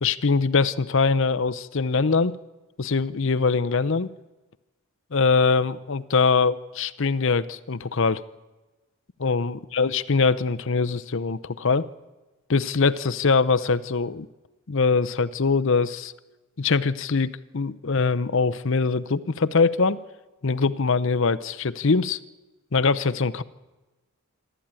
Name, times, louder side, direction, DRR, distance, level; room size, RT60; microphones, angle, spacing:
voice 1, 0.0-2.4 2.8-4.1 5.1-8.2 9.2-11.9 12.5-14.3 14.7-16.1 16.6-20.0 20.4-22.2 22.7-23.4, left 4 dB, 60° left, 13 dB, 0.7 m, -22 dB
27.0 x 12.5 x 8.9 m, 1.1 s
head